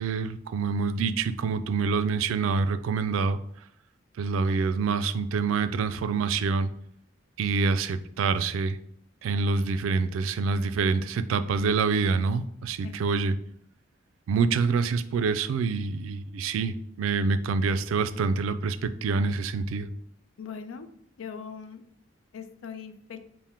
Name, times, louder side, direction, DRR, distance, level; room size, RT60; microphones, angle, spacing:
voice 1, 0.0-3.4 4.2-6.7 7.4-8.8 9.2-13.4 14.3-19.9, right 4 dB, 90° right, 11 dB, 0.3 m, -26 dB
voice 2, 20.4-20.9 21.2-21.8 22.3-23.2, left 6 dB, 85° left, 9 dB, 0.4 m, -40 dB
3.5 x 2.1 x 4.3 m, 0.69 s
head